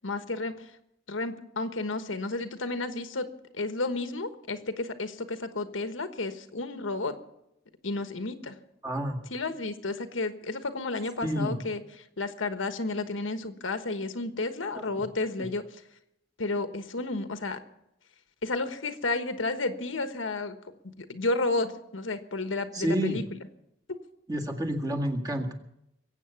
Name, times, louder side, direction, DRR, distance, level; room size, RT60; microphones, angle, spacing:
voice 1, 0.0-0.7 1.1-3.3 3.5-7.1 7.8-8.6 9.3-11.8 12.2-15.6 16.4-17.6 18.4-20.6 21.0-23.4, left 2 dB, 85° left, 8 dB, 1.3 m, -32 dB
voice 2, 8.8-9.2 11.2-11.6 14.8-15.0 15.4-15.5 22.7-23.2 24.3-25.5, equal, 20° right, 1 dB, 1.9 m, -29 dB
22.0 x 8.4 x 7.1 m, 0.83 s
head